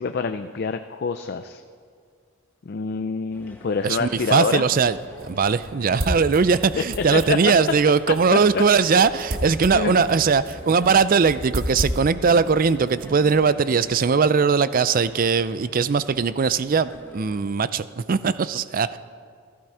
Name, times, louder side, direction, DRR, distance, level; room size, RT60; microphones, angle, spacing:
voice 1, 0.0-1.6 2.7-4.6 7.1-7.4 8.3-8.6 9.7-10.1, left 5 dB, 50° left, 8 dB, 0.4 m, -26 dB
sound 1, 3.3-17.4, left 1 dB, 10° left, 1.2 m, -46 dB
voice 2, 3.8-5.0 5.2-19.0, right 5 dB, 40° right, 15 dB, 0.4 m, -20 dB
sound 2, 4.2-14.1, right 1 dB, 65° right, 1.5 m, -34 dB
15.0 x 14.0 x 4.9 m, 2.1 s
head